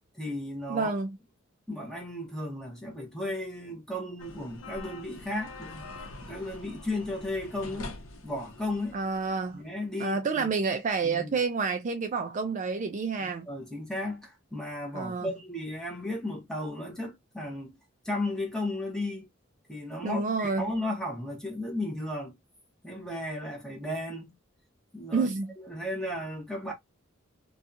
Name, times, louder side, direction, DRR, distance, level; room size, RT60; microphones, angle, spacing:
voice 1, 0.1-0.9 1.7-9.0 9.5-10.5 11.0-11.4 13.2-17.7 18.0-19.3 19.7-22.4 22.8-24.4 24.9-25.3 25.6-26.7, left 1 dB, 5° left, 0.8 m, -35 dB
voice 2, 0.7-1.2 8.9-9.6 10.0-13.5 14.9-15.3 20.0-20.7 25.1-25.5, right 4 dB, 40° right, 0.3 m, -29 dB
sound 1, 4.2-9.6, left 2 dB, 90° left, 0.7 m, -45 dB
2.7 x 2.3 x 2.5 m
head